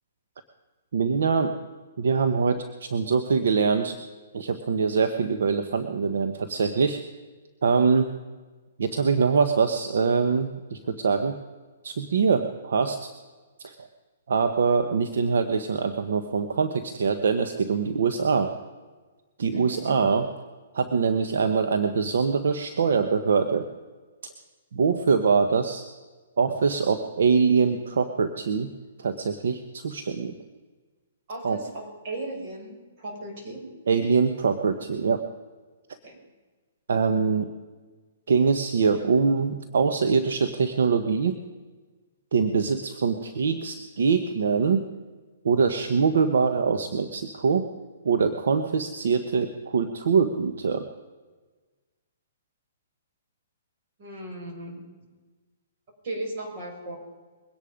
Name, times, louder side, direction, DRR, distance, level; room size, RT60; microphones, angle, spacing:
voice 1, 0.9-1.5 2.0-4.0 4.3-7.0 7.6-8.1 8.8-11.4 11.8-13.1 13.6-13.7 14.3-18.5 19.4-20.3 20.7-23.7 24.7-25.9 26.4-28.7 29.0-30.3 31.4-31.6 33.9-35.2 36.9-37.5 38.3-41.4 42.3-44.8 45.4-47.6 48.0-50.9, right 5 dB, 75° right, 8 dB, 1.1 m, -23 dB
voice 2, 19.5-20.1 26.5-26.6 31.3-33.6 36.0-36.1 54.0-54.8 56.0-57.0, right 2 dB, 45° right, 0 dB, 6.2 m, -36 dB
22.5 x 10.5 x 5.2 m, 1.3 s
hypercardioid pair, 150°, 0 cm